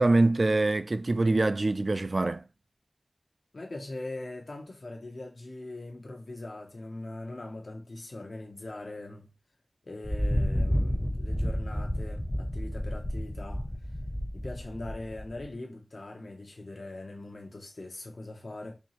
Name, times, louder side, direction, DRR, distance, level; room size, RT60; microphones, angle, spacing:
voice 1, 0.0-2.4, right 2 dB, 60° right, 0.3 m, -24 dB
voice 2, 3.5-9.3 9.8-13.7 14.3-18.8, left 2 dB, 80° left, 0.7 m, -41 dB
Thunder, 10.0-15.5, equal, 20° left, 0.6 m, -30 dB
4.3 x 2.8 x 2.8 m
wide cardioid pair, 55°, 0 cm